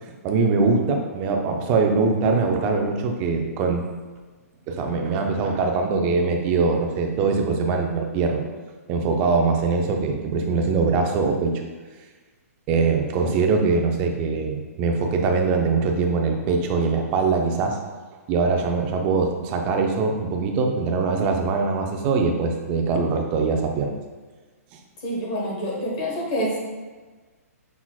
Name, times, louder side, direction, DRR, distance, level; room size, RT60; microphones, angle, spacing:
voice 1, 0.2-3.8 4.7-8.4 8.9-11.6 12.7-17.8 18.3-23.9, right 4 dB, 15° right, 3 dB, 0.3 m, -22 dB
voice 2, 25.0-26.6, equal, 25° left, -3 dB, 0.9 m, -27 dB
5.6 x 4.0 x 2.3 m, 1.4 s
hypercardioid pair, 170°, 9 cm